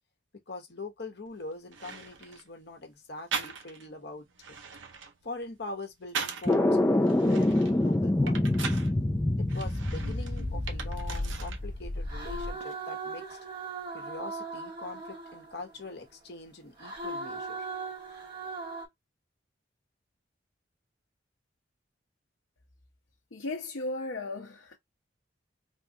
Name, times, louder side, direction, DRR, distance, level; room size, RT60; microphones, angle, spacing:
voice 1, 0.5-4.6 5.2-8.8 9.4-13.4 13.9-17.7, left 2 dB, 60° left, 1.1 m, -43 dB
sound 1, 1.3-1.4 1.7-2.5 3.3-3.9 4.3-6.6 7.0-8.9 9.5-11.6 11.9-12.7, right 5 dB, 80° right, 0.7 m, -39 dB
sound 2, 6.5-12.5, left 1 dB, 15° left, 0.4 m, -27 dB
sound 3, 10.0-11.5 12.1-15.9 16.8-18.9, right 3 dB, 55° right, 1.6 m, -39 dB
voice 2, 23.3-24.8, left 2 dB, 85° left, 0.7 m, -35 dB
3.5 x 2.3 x 2.7 m
head